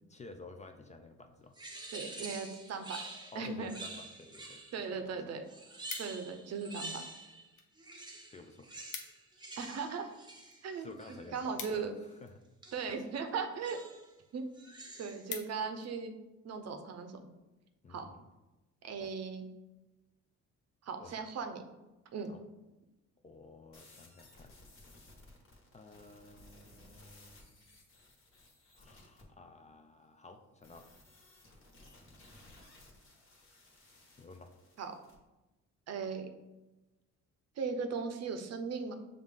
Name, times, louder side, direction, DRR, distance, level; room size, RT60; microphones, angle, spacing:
voice 1, 0.1-1.6 3.3-5.3 8.3-8.7 10.8-12.4 17.8-18.2 19.0-19.1 21.0-21.3 22.3-22.4 23.2-24.6 25.7-27.6 28.8-30.9 34.2-34.5, left 3 dB, 25° left, 6 dB, 0.4 m, -52 dB
sound 1, 1.5-4.9 5.5-7.5 7.8-11.6 12.6-13.0 13.6-14.1 14.5-15.3, right 2 dB, 15° right, 0.8 m, -47 dB
voice 2, 1.9-3.0 3.3-3.7 4.7-5.4 6.0-7.0 9.6-10.1 10.6-11.9 12.7-13.9 14.3-14.5 15.0-16.1 16.4-17.2 17.9-18.1 18.8-19.5 20.8-21.6 22.1-22.3 34.8-34.9 35.9-36.3 37.6-39.0, right 5 dB, 60° right, 7 dB, 0.6 m, -38 dB
sound 2, 4.7-4.8 5.1-6.5 7.2-7.7 8.0-8.1 8.4-8.5 8.7-9.3 9.7-12.5 13.3-13.6 14.1-14.2 14.5-14.6 14.9-15.9 16.4-16.6, left 7 dB, 85° left, 0.7 m, -47 dB
sound 3, 23.7-29.2 30.6-35.2, left 2 dB, 45° left, 1.3 m, -59 dB
5.8 x 2.6 x 3.6 m, 1.0 s
cardioid pair, 90°, 30 cm